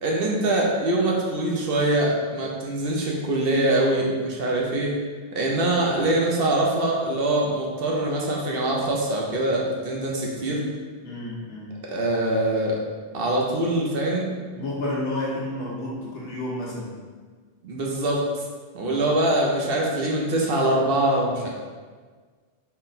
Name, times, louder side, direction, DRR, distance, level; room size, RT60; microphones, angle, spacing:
voice 1, 0.0-4.9 5.3-10.6 11.9-12.8 13.1-14.3 17.6-18.3 18.7-21.5, right 1 dB, 60° right, -2 dB, 0.8 m, -23 dB
voice 2, 11.0-11.7 14.5-16.9 18.8-19.0, left 1 dB, 80° left, -6 dB, 1.1 m, -31 dB
4.2 x 2.1 x 4.0 m, 1.5 s
omnidirectional pair, 1.2 m